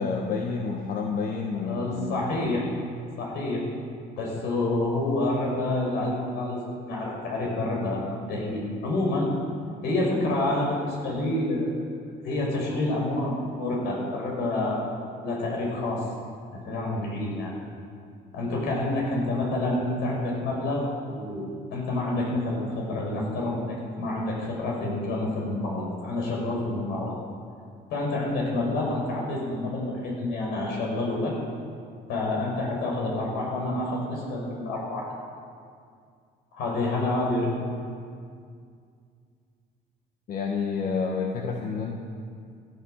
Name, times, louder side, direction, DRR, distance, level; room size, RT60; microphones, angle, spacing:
voice 1, 0.0-2.6 40.3-41.9, left 5 dB, 55° left, 1 dB, 1.5 m, -29 dB
voice 2, 1.6-2.7 3.2-3.7 4.2-9.3 9.8-11.8 12.2-16.1 16.6-17.5 18.3-21.4 21.7-27.2 27.9-31.3 32.1-35.1 36.5-37.5, left 2 dB, 85° left, -2 dB, 5.5 m, -28 dB
16.5 x 13.5 x 6.5 m, 2.2 s
cardioid pair, 110°, 17 cm